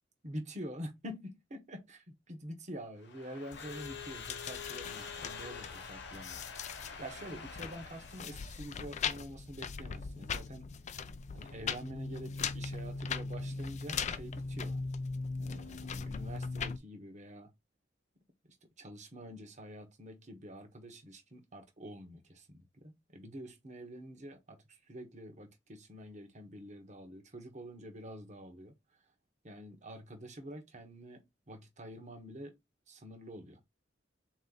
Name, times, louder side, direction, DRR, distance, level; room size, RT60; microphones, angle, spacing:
voice 1, 0.2-6.5 7.0-10.7 11.3-14.8 15.4-17.5 18.8-28.7 29.4-32.6 32.9-33.6, equal, 40° right, 1.2 m, -47 dB
Crowd / Alarm, 3.0-8.6, left 6 dB, 65° left, 0.9 m, -46 dB
sound 1, 3.5-16.8, left 5 dB, 40° left, 0.4 m, -40 dB
3.8 x 3.0 x 3.9 m
head